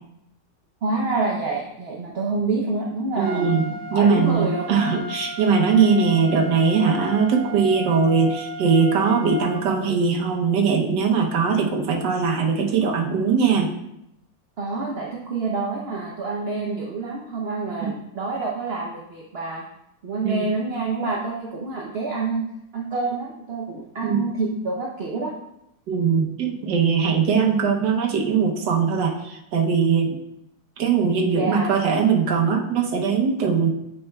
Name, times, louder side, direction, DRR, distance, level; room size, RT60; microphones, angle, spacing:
voice 1, 0.8-3.6 3.9-4.9 5.7-6.1 14.6-19.6 20.0-22.4 22.7-25.3 31.3-31.7, right 3 dB, 55° right, -1 dB, 0.7 m, -27 dB
Trumpet, 3.2-9.7, left 2 dB, 35° right, 1.2 m, -35 dB
voice 2, 3.2-13.7 17.8-17.9 20.2-20.4 24.0-24.3 25.9-30.2 30.8-33.7, right 5 dB, 85° right, 2 dB, 1.5 m, -21 dB
8.7 x 5.5 x 2.3 m, 0.81 s
omnidirectional pair, 1.8 m